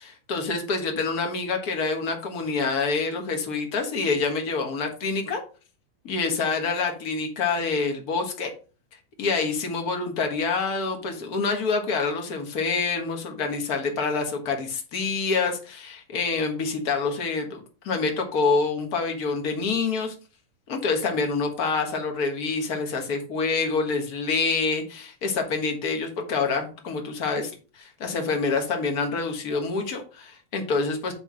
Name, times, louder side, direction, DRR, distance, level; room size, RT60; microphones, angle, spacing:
voice 1, 0.0-5.4 6.0-8.5 9.2-20.1 20.7-31.1, left 4 dB, 55° left, 3 dB, 1.0 m, -27 dB
8.2 x 3.7 x 6.3 m, 0.36 s
omnidirectional pair, 4.2 m